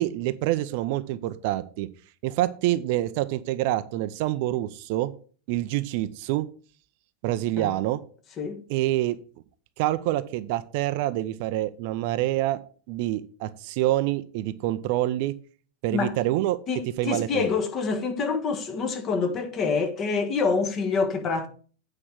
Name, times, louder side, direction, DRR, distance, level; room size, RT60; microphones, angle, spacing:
voice 1, 0.0-1.9 2.2-5.1 5.5-6.5 7.2-8.0 8.7-9.2 9.8-12.6 12.9-15.3 15.8-16.6 17.0-17.5, right 15 dB, 45° right, 0.5 m, -26 dB
voice 2, 16.7-21.5, left 4 dB, 30° left, 1.4 m, -26 dB
8.5 x 4.8 x 6.2 m
figure-of-eight pair, 90°, 0 cm